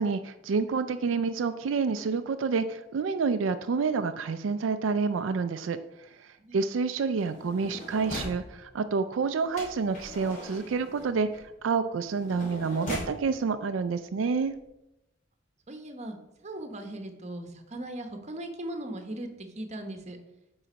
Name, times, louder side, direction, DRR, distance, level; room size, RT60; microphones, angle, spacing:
voice 1, 0.0-14.5, right 5 dB, 80° right, 9 dB, 0.4 m, -28 dB
sound 1, 7.2-8.5 9.6-13.2 14.0-14.1 14.4-14.7, left 2 dB, 40° left, 2.8 m, -40 dB
voice 2, 15.7-16.2 16.4-20.2, right 1 dB, 35° right, 6 dB, 1.0 m, -38 dB
8.6 x 4.0 x 5.1 m, 0.91 s
head